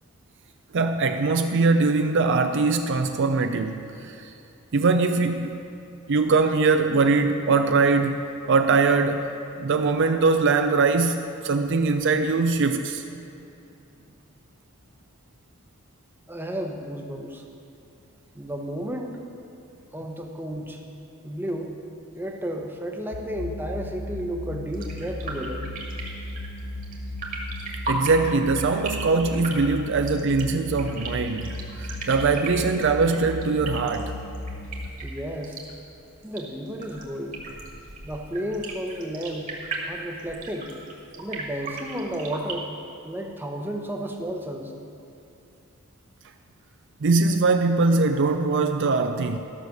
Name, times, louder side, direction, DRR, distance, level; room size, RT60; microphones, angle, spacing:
voice 1, 0.7-4.3 4.7-5.6 6.1-9.3 9.5-13.0 27.9-34.2 47.0-49.4, right 4 dB, 55° right, 7 dB, 0.5 m, -22 dB
voice 2, 16.3-17.4 18.3-19.2 19.9-20.8 21.2-21.7 22.1-25.7 35.0-35.6 36.2-37.4 38.0-39.5 39.9-40.7 41.2-42.7 43.0-44.7, equal, 10° right, 2 dB, 0.9 m, -32 dB
sound 1, 23.1-34.9, left 1 dB, 85° left, 0.8 m, -36 dB
sound 2, 24.7-42.5, right 2 dB, 40° right, 1.8 m, -37 dB
13.5 x 6.5 x 6.5 m, 2.7 s
head